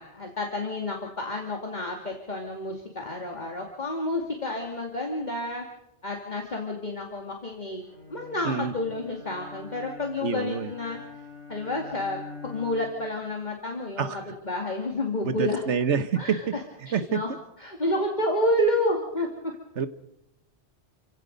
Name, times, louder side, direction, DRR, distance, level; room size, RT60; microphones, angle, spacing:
voice 1, 0.0-5.6 6.0-11.0 11.5-15.6 16.2-17.3 17.6-19.5, left 1 dB, 40° left, 1 dB, 2.5 m, -30 dB
Bowed string instrument, 7.8-13.1, left 2 dB, 65° left, 8.6 m, -44 dB
voice 2, 10.2-10.7 14.0-14.2 15.2-16.4 16.9-17.2 19.8-19.9, right 6 dB, 75° right, 12 dB, 1.4 m, -27 dB
29.5 x 16.5 x 5.3 m, 0.80 s
omnidirectional pair, 1.2 m